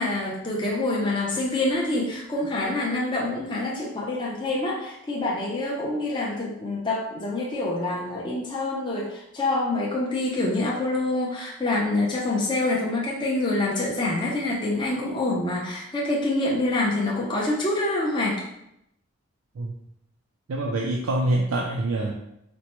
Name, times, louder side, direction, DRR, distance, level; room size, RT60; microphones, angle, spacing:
voice 1, 0.0-18.4, left 2 dB, 20° left, -4 dB, 0.5 m, -26 dB
voice 2, 20.5-22.1, right 1 dB, 85° right, 0 dB, 0.4 m, -25 dB
4.3 x 2.1 x 2.9 m, 0.79 s
head